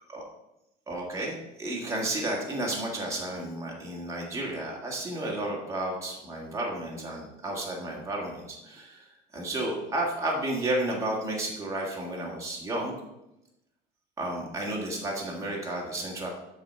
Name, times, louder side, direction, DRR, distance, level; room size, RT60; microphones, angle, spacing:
voice 1, 0.9-9.1 9.3-12.9 14.2-16.3, right 1 dB, 15° right, -3 dB, 1.7 m, -32 dB
7.6 x 4.1 x 6.7 m, 0.90 s
cardioid pair, 145°, 20 cm